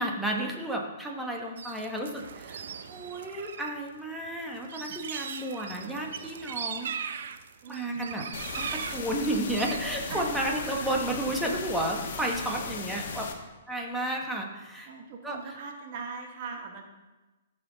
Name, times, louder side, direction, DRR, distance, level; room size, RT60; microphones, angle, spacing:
voice 1, 0.0-2.6 2.9-6.9 7.7-8.3 8.5-13.3 13.7-14.9 15.2-15.6, right 1 dB, 5° right, 0 dB, 1.2 m, -32 dB
sound 1, 1.6-3.7 4.0-9.8, right 7 dB, 65° right, 0.6 m, -39 dB
voice 2, 7.6-8.2 10.1-10.3 10.6-11.0 14.9-16.9, right 5 dB, 45° right, 3 dB, 1.3 m, -40 dB
sound 2, 8.3-13.3, left 5 dB, 60° left, 1.3 m, -37 dB
14.0 x 5.9 x 4.0 m, 1.1 s
hypercardioid pair, 155°, 0 cm